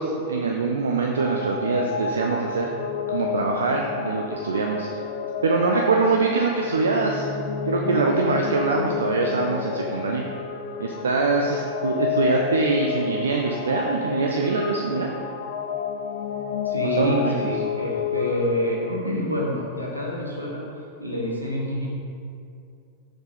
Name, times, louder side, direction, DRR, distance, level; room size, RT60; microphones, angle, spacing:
voice 1, 0.0-2.7 3.1-4.9 5.4-7.3 7.7-10.2 10.8-15.1 17.0-17.4, right 4 dB, 70° right, 1 dB, 0.4 m, -23 dB
sound 1, 1.2-19.0, left 7 dB, 55° left, 0.4 m, -30 dB
voice 2, 16.6-20.6 21.0-21.9, left 1 dB, 90° right, -3 dB, 1.2 m, -27 dB
6.2 x 4.7 x 4.0 m, 2.4 s
figure-of-eight pair, 90°, 0 cm